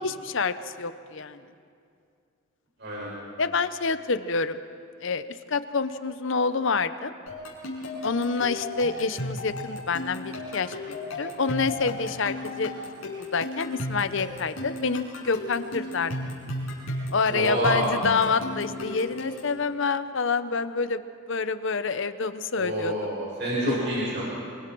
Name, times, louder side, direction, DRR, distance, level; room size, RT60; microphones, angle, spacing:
voice 1, 0.0-1.4 3.4-4.6 5.0-7.1 8.0-12.7 13.2-16.1 17.1-21.0 21.3-22.9 23.7-23.8, left 4 dB, 60° left, 12 dB, 0.7 m, -27 dB
sound 1, 7.3-19.6, left 1 dB, 75° left, 5.9 m, -35 dB
voice 2, 17.3-17.9 22.5-24.2, right 1 dB, 50° right, -6 dB, 6.5 m, -28 dB
27.5 x 24.0 x 4.6 m, 2.4 s
head